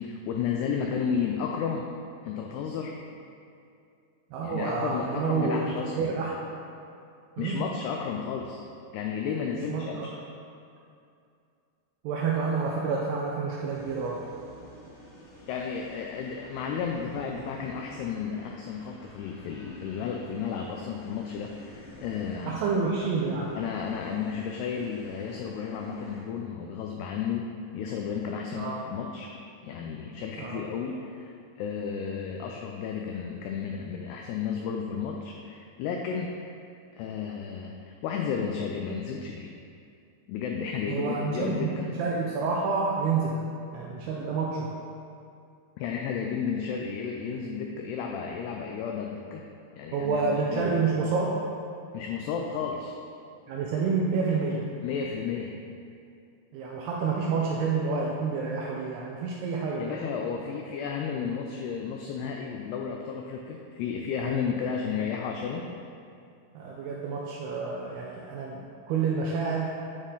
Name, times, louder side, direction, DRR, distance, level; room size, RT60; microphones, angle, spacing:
voice 1, 0.0-1.9 2.2-3.0 4.4-6.1 7.4-8.6 8.9-10.1 15.5-22.6 23.6-27.5 27.7-29.3 29.6-31.3 31.6-36.3 37.0-39.5 40.3-41.9 45.8-49.4 49.7-50.8 51.9-53.0 54.8-55.6 59.8-65.7, left 6 dB, 90° left, 1 dB, 2.3 m, -33 dB
voice 2, 4.3-5.6 5.9-6.4 7.4-7.7 9.5-10.1 12.0-14.3 22.4-23.6 28.5-28.8 30.4-30.6 40.9-44.7 49.9-51.4 53.5-54.7 56.5-60.0 66.6-69.7, right 4 dB, 80° right, -3 dB, 2.3 m, -29 dB
sound 1, 13.7-26.2, left 2 dB, 55° left, 2.3 m, -49 dB
9.7 x 6.4 x 3.8 m, 2.5 s
omnidirectional pair, 5.3 m